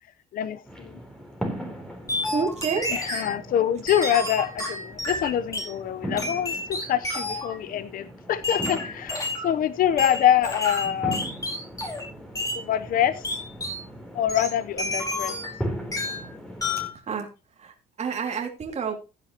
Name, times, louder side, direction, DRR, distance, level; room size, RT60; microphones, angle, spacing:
voice 1, 0.3-1.0 2.9-11.2 12.5-13.2 14.1-15.4, left 10 dB, 60° left, 0.9 m, -25 dB
sound 1, 0.7-16.9, equal, 5° left, 3.6 m, -39 dB
sound 2, 2.1-3.3 3.9-5.7 6.2-7.6 8.4-9.5 10.0-12.1 12.4-12.6 13.2-13.8 14.3-15.6 15.9-16.3 16.6-17.0, left 2 dB, 20° left, 4.9 m, -30 dB
voice 2, 2.3-2.9 13.6-13.8 17.1-17.3 17.6-19.0, right 6 dB, 40° right, 2.6 m, -29 dB
15.5 x 9.4 x 3.0 m
cardioid pair, 110°, 17 cm